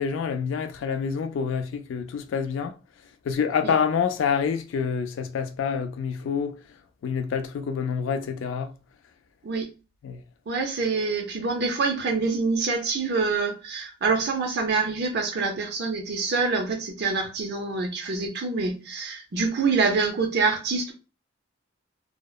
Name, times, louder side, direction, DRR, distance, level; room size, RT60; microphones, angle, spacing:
voice 1, 0.0-2.7 3.3-6.6 7.0-8.7 10.0-10.2, left 6 dB, 75° left, 0.3 m, -27 dB
voice 2, 10.5-20.9, right 4 dB, 55° right, 0.5 m, -26 dB
2.8 x 2.0 x 2.2 m
head